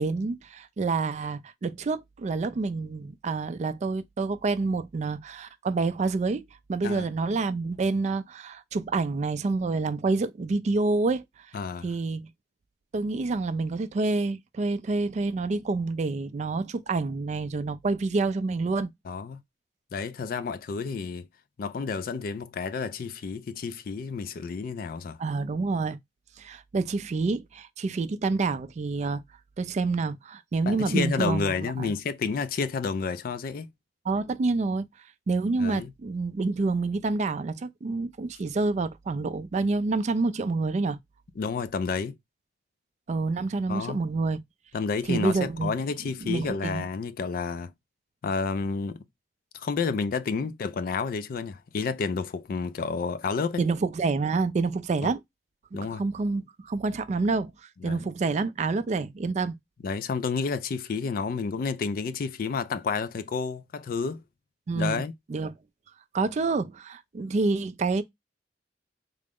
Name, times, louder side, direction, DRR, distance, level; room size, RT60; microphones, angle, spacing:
voice 1, 0.0-6.4 6.7-11.2 11.8-12.3 12.9-18.9 25.2-26.0 26.4-29.2 29.6-31.9 34.1-34.9 35.3-41.0 43.1-44.4 45.1-45.8 46.2-46.8 53.6-55.2 55.7-57.5 57.8-59.6 64.7-65.0 65.3-65.5 66.1-68.0, right 3 dB, 40° right, 0.3 m, -28 dB
voice 2, 11.5-11.9 19.1-19.4 19.9-21.3 21.6-25.2 30.6-33.7 35.6-35.9 41.4-42.2 43.7-44.0 44.7-47.7 48.2-49.0 49.5-53.6 55.0-55.1 55.7-56.0 57.8-58.1 59.8-64.2 64.7-65.1, left 5 dB, 50° left, 0.3 m, -30 dB
3.7 x 2.1 x 3.5 m
head